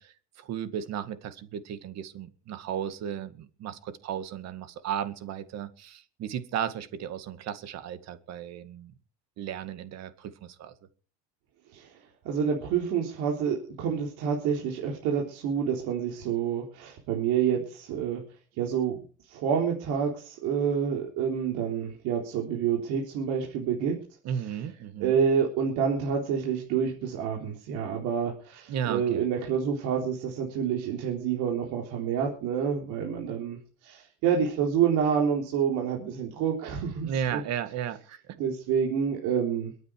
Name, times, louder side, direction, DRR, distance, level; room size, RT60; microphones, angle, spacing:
voice 1, 0.0-8.9 9.4-10.7 24.2-25.2 28.7-29.3 37.0-38.2, right 9 dB, 60° right, 11 dB, 2.1 m, -35 dB
voice 2, 12.2-18.2 18.6-19.0 19.3-24.0 25.0-37.4 38.4-39.7, right 7 dB, 75° right, 0 dB, 3.9 m, -28 dB
23.0 x 9.5 x 4.8 m, 0.39 s
supercardioid pair, 100°, 30 cm